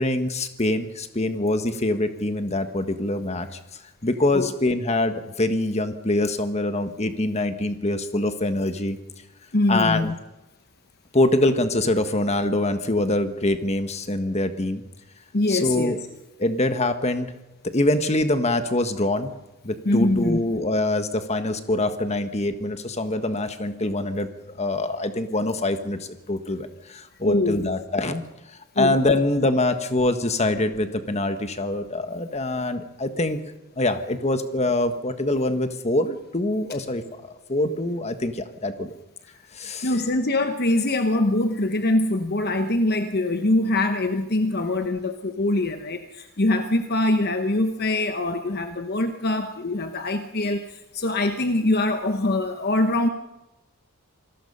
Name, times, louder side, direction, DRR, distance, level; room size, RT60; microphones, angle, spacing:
voice 1, 0.0-3.5 4.0-9.0 9.7-10.1 11.1-14.8 15.5-16.0 16.4-17.3 17.7-19.3 19.6-24.3 24.6-28.2 28.8-33.4 33.8-38.9 39.5-39.9, left 2 dB, 30° left, 8 dB, 1.5 m, -24 dB
voice 2, 9.5-10.1 15.3-16.0 19.8-20.4 27.2-27.7 28.7-29.0 39.8-53.1, left 2 dB, 45° left, 7 dB, 1.1 m, -23 dB
27.0 x 19.0 x 5.6 m, 1.0 s
head